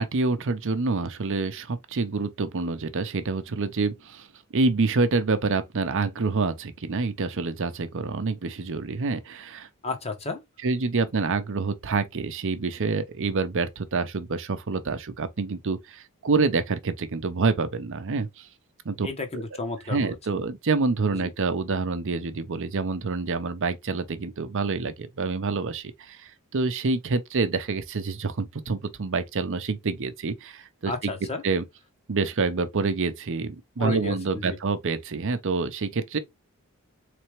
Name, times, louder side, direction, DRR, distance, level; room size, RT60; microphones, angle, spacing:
voice 1, 0.0-4.3 4.5-9.7 10.6-18.5 18.8-19.1 19.3-19.4 19.9-31.1 31.4-31.6 32.1-36.2, right 4 dB, 60° right, 0.6 m, -27 dB
voice 2, 9.8-10.4 19.0-20.4 21.2-21.3 30.9-31.4 33.8-34.6, left 3 dB, 30° left, 1.1 m, -32 dB
4.2 x 3.3 x 3.2 m
head